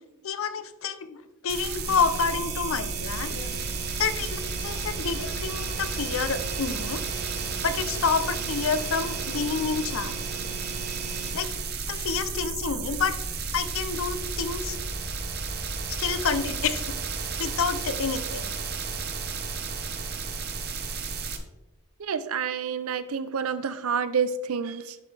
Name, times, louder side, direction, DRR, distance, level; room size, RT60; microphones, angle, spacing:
voice 1, 0.2-1.2 1.4-3.6 4.0-7.0 7.6-10.1 11.3-11.5 11.9-13.2 13.5-14.8 16.0-16.9 17.4-18.5, left 5 dB, 65° left, 11 dB, 0.6 m, -28 dB
sound 1, 1.5-21.4, right 5 dB, 45° right, 0.9 m, -33 dB
sound 2, 1.9-11.3, right 5 dB, 30° right, 1.5 m, -38 dB
voice 2, 22.0-25.0, right 6 dB, 70° right, 12 dB, 0.6 m, -28 dB
11.0 x 5.9 x 3.4 m, 1.1 s
head